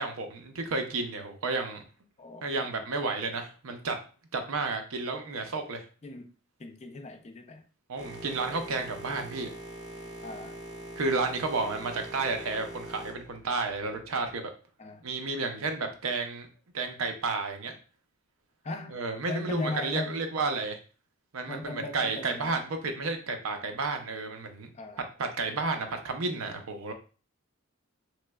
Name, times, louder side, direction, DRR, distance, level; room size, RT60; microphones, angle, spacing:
voice 1, 0.0-1.8 2.4-4.0 4.3-5.8 7.9-9.5 11.0-14.5 15.0-16.5 16.7-17.8 18.9-20.8 21.3-24.7 25.2-26.9, right 3 dB, 80° right, 0.6 m, -32 dB
voice 2, 2.2-2.5 6.0-6.3 6.6-7.6 10.2-10.6 14.8-15.0 18.6-19.0 19.3-20.2 21.5-22.6 24.7-25.1, left 2 dB, 30° left, 0.4 m, -38 dB
Boat Water vehicle, 8.0-14.3, right 1 dB, 20° right, 0.6 m, -43 dB
3.3 x 3.0 x 2.2 m
head